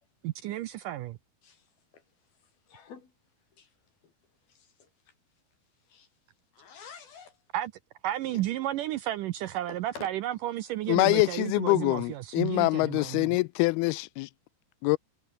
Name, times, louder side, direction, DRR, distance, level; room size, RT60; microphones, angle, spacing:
voice 1, 0.2-1.2 7.5-7.7 8.0-13.4, right 13 dB, 80° right, 2.0 m, -32 dB
voice 2, 2.7-3.1 3.6-3.7 4.0-4.1 4.5-4.9 5.9-6.1 6.5-7.4 9.7-10.1, left 6 dB, 70° left, 6.4 m, -48 dB
voice 3, 10.9-14.3 14.8-15.0, left 23 dB, 85° left, 2.4 m, -25 dB
omnidirectional pair, 4.6 m